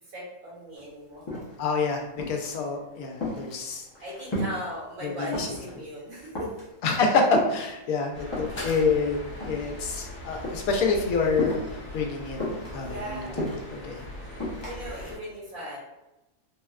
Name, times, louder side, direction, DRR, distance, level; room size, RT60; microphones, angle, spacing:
voice 1, 0.0-1.4 4.0-6.5 8.5-8.6 11.9-12.1 12.7-13.4 14.3-15.8, equal, 85° right, -7 dB, 1.8 m, -38 dB
sound 1, 0.8-0.9 1.1-1.8 2.2-2.6 2.9-4.7 5.0-5.7 6.1-6.7 7.3-8.6 9.3-10.1 10.3-10.6 11.4-11.8 12.4-13.8 14.4-14.8, left 1 dB, 30° left, 0.5 m, -33 dB
voice 2, 1.6-3.9 5.0-5.5 6.8-9.2 9.4-11.6 11.9-12.4 12.7-13.4 13.7-14.0, left 4 dB, 90° left, 2 dB, 1.0 m, -27 dB
sound 2, 8.1-15.2, left 1 dB, 50° left, 1.0 m, -40 dB
3.5 x 2.1 x 2.3 m, 0.96 s
omnidirectional pair, 1.5 m